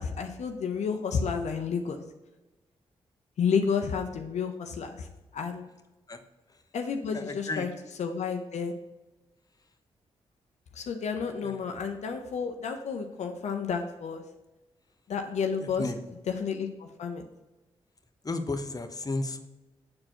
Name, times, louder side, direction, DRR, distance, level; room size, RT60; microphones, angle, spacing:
voice 1, 0.0-2.0 3.4-5.1 5.3-5.7 6.7-7.7 8.0-8.7 10.8-14.2 15.1-15.8 16.3-17.2, left 6 dB, 70° left, 5 dB, 0.7 m, -31 dB
voice 2, 7.1-7.7 11.4-11.6 15.6-16.1 18.2-19.4, left 2 dB, 30° left, 7 dB, 0.8 m, -33 dB
7.5 x 4.4 x 4.4 m, 1.1 s
supercardioid pair, 45°, 12 cm